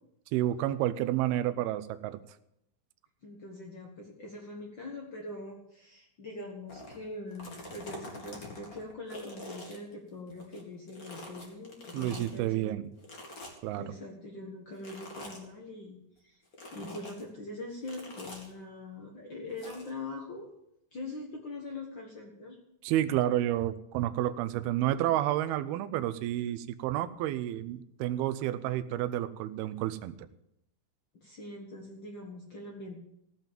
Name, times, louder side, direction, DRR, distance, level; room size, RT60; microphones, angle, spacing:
voice 1, 0.3-2.2 11.9-12.9 13.6-13.8 22.8-30.1, right 13 dB, 80° right, 12 dB, 2.4 m, -30 dB
voice 2, 3.2-12.7 13.8-16.4 16.7-20.5 20.9-22.6 31.1-33.0, left 2 dB, 70° left, 0 dB, 1.1 m, -43 dB
sound 1, 6.7-7.0 7.3-10.6 10.9-12.4 13.0-13.8 14.8-15.4 16.5-17.2 17.8-18.5 19.6-19.9, left 1 dB, 30° left, 1.9 m, -45 dB
16.5 x 5.8 x 9.0 m, 0.79 s
omnidirectional pair, 4.9 m